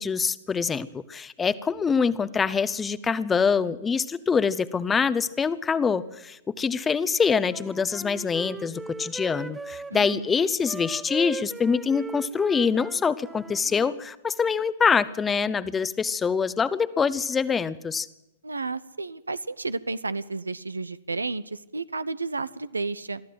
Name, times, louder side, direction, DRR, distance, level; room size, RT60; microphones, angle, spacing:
voice 1, 0.0-18.1, left 5 dB, 15° left, 17 dB, 0.9 m, -25 dB
Wind instrument woodwind instrument, 7.2-10.2 10.6-14.0, right 3 dB, 10° right, 1.0 m, -39 dB
voice 2, 9.9-10.3 18.4-23.2, right 3 dB, 85° right, 16 dB, 0.8 m, -32 dB
23.0 x 14.0 x 7.9 m, 0.94 s
figure-of-eight pair, 105°, 0 cm